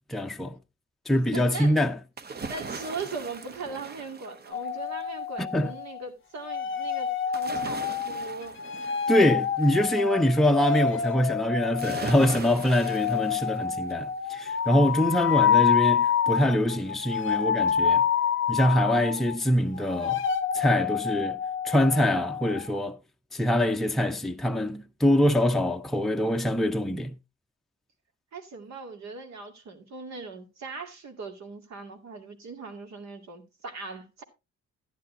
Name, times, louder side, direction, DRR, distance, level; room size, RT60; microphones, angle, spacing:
voice 1, 0.1-0.5 1.1-1.9 5.4-5.7 9.1-18.0 18.5-20.2 20.5-21.4 21.6-23.0 23.3-27.1, left 1 dB, ahead, 0.6 m, -24 dB
voice 2, 1.3-1.8 2.5-8.6 28.3-34.2, right 4 dB, 70° right, 2.3 m, -39 dB
sound 1, 2.2-5.0 7.3-9.9 11.8-14.1 14.5-14.6, right 5 dB, 35° right, 0.8 m, -40 dB
sound 2, 4.5-6.1 6.4-19.4 19.7-22.8, left 8 dB, 45° left, 0.7 m, -28 dB
12.5 x 10.5 x 2.7 m
cardioid pair, 110°, 29 cm